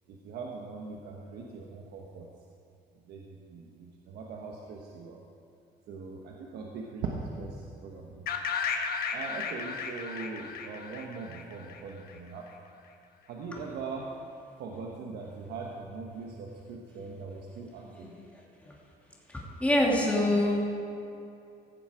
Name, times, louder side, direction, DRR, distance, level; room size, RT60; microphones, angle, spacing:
voice 1, 0.1-2.3 3.0-5.2 5.9-8.3 9.1-12.5 13.3-14.1 14.6-18.1, right 4 dB, 75° right, -1 dB, 1.2 m, -40 dB
sound 1, 8.3-12.1, left 5 dB, 60° left, 1.1 m, -34 dB
voice 2, 19.3-20.7, left 1 dB, 10° left, -3 dB, 2.5 m, -25 dB
16.5 x 7.2 x 5.0 m, 2.6 s
cardioid pair, 110°, 17 cm